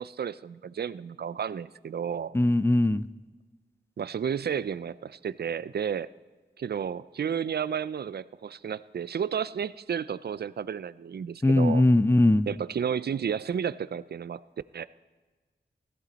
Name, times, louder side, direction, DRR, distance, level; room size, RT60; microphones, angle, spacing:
voice 1, 0.0-2.3 4.0-6.1 6.6-11.8 12.5-14.4 14.7-14.8, right 7 dB, 65° right, 17 dB, 0.4 m, -32 dB
voice 2, 2.3-3.1 11.4-12.5, left 1 dB, 15° left, 16 dB, 0.4 m, -20 dB
16.5 x 14.5 x 4.0 m, 1.3 s
wide cardioid pair, 80°, 18 cm